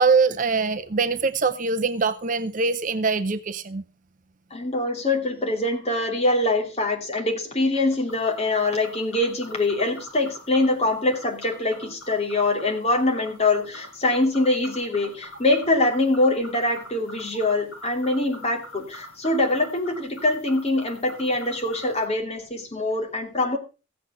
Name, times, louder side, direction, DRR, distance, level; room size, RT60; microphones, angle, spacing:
voice 1, 0.0-3.8, right 4 dB, 40° right, 11 dB, 0.6 m, -23 dB
voice 2, 4.5-23.6, left 2 dB, 30° left, 1 dB, 2.8 m, -24 dB
sound 1, 8.1-22.0, left 1 dB, 80° left, 6.3 m, -45 dB
15.5 x 8.3 x 5.5 m, 0.33 s
head